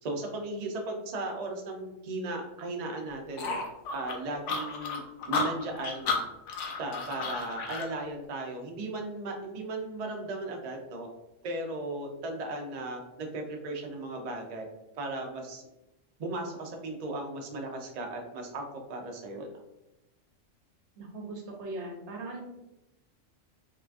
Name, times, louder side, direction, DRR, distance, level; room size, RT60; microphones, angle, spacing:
voice 1, 0.0-3.6 3.9-5.0 5.3-6.2 6.8-11.1 11.4-14.7 15.0-15.7 16.2-19.5, right 2 dB, 90° right, 2 dB, 0.3 m, -36 dB
sound 1, 3.4-7.9, left 4 dB, 70° left, 0.9 m, -32 dB
voice 2, 21.0-22.4, right 2 dB, 65° right, 1 dB, 0.9 m, -39 dB
3.8 x 2.3 x 2.4 m, 0.95 s
omnidirectional pair, 1.4 m